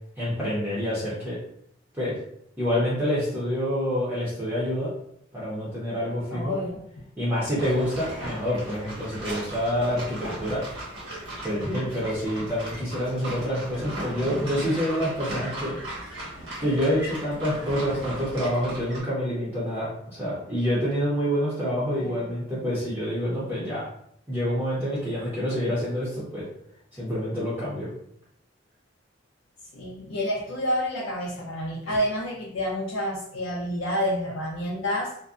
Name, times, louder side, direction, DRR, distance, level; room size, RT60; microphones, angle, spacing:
voice 1, 0.2-1.4 2.0-2.2 2.6-4.9 5.3-6.5 7.2-10.6 11.4-15.7 16.6-23.9 24.3-26.4 27.0-27.9, equal, 10° right, -9 dB, 0.6 m, -27 dB
voice 2, 6.3-6.8 22.0-22.3 29.7-35.2, equal, 80° left, -5 dB, 0.5 m, -29 dB
sound 1, 7.5-19.0, right 1 dB, 80° right, 1.3 m, -37 dB
2.5 x 2.2 x 2.4 m, 0.70 s
head